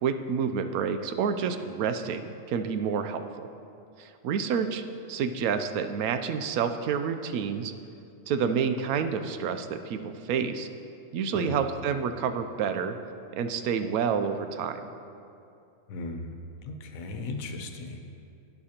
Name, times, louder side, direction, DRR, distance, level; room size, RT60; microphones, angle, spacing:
voice 1, 0.0-3.5 4.0-4.8 5.1-7.7 8.3-10.7 11.1-13.0 13.4-14.8, right 6 dB, 90° right, 8 dB, 1.0 m, -29 dB
voice 2, 15.9-16.4 16.6-18.0, left 3 dB, 75° left, 5 dB, 1.2 m, -36 dB
11.5 x 9.6 x 2.8 m, 2.7 s
omnidirectional pair, 1.5 m